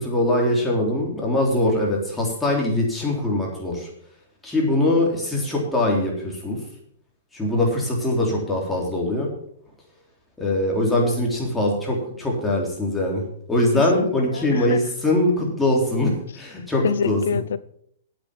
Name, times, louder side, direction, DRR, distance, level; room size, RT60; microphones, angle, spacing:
voice 1, 0.0-3.9 4.4-6.6 7.3-9.3 10.4-13.2 13.5-17.2, left 1 dB, 10° left, -2 dB, 3.7 m, -22 dB
voice 2, 13.7-14.8 16.8-17.6, left 7 dB, 75° left, 17 dB, 0.6 m, -26 dB
8.6 x 8.6 x 7.2 m, 0.67 s
hypercardioid pair, 135°, 0 cm